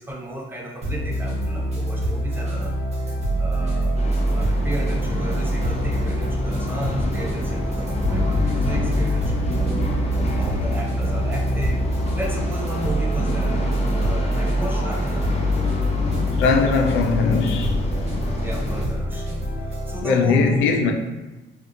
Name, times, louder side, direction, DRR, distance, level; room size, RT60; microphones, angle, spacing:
voice 1, 0.0-3.9 4.3-9.8 10.2-11.9 12.1-15.2 18.4-19.3 19.6-20.9, right 1 dB, 10° right, -2 dB, 0.6 m, -34 dB
sound 1, 0.8-20.0, equal, 35° right, 0.9 m, -25 dB
sound 2, 3.9-18.8, left 1 dB, 30° left, 0.6 m, -28 dB
voice 2, 16.4-17.8 20.0-20.9, left 4 dB, 80° left, 3 dB, 0.4 m, -19 dB
2.5 x 2.5 x 2.5 m, 1.1 s
cardioid pair, 90°, 20 cm